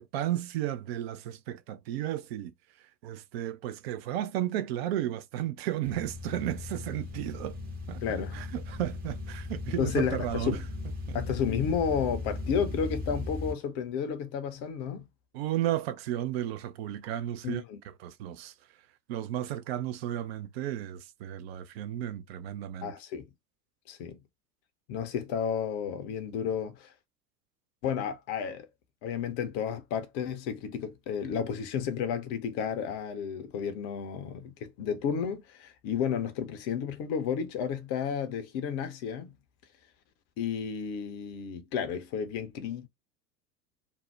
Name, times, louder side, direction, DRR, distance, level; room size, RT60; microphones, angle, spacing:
voice 1, 0.0-2.5 3.0-7.6 7.9-10.6 11.1-11.2 15.3-17.6 18.0-18.5 19.1-22.9, right 12 dB, 40° right, 0.4 m, -33 dB
sound 1, 5.8-13.5, left 2 dB, 20° right, 0.7 m, -37 dB
voice 2, 8.0-8.3 9.8-10.6 11.1-15.0 17.4-17.8 22.8-23.2 23.9-24.2 24.9-26.9 27.8-28.7 29.0-39.3 40.4-42.9, left 7 dB, 35° left, 0.6 m, -32 dB
2.6 x 2.0 x 3.2 m
figure-of-eight pair, 80°, 49 cm